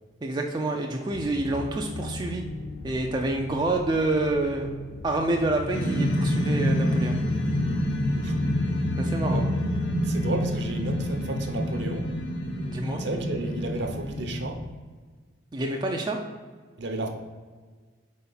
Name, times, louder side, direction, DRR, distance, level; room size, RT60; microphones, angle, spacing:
voice 1, 0.2-2.4 2.8-4.7 5.0-7.2 9.0-9.4 12.7-13.0 15.5-16.2, right 2 dB, 20° right, 1 dB, 0.4 m, -27 dB
sound 1, 1.1-14.7, left 2 dB, 50° left, 0.4 m, -36 dB
sound 2, 5.7-14.2, equal, 75° left, 1.1 m, -27 dB
voice 2, 10.0-12.1 13.0-14.6 16.8-17.1, right 2 dB, 60° right, 4 dB, 0.8 m, -32 dB
4.3 x 4.3 x 5.5 m, 1.5 s
head